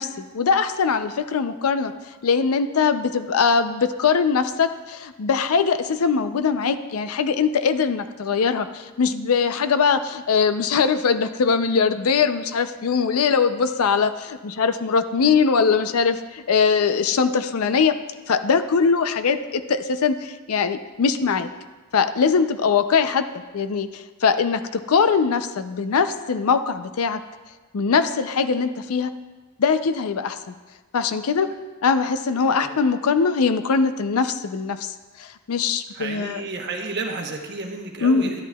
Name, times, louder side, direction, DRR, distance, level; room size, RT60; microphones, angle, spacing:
voice 1, 0.0-1.9 2.2-18.0 18.3-21.5 21.9-23.2 23.5-27.2 27.7-29.1 29.6-30.5 30.9-31.5 31.8-34.9 35.2-36.4 38.0-38.3, left 5 dB, 85° left, 11 dB, 0.5 m, -21 dB
voice 2, 35.9-38.3, right 3 dB, 50° right, 2 dB, 1.0 m, -31 dB
11.0 x 11.0 x 2.3 m, 1.2 s
head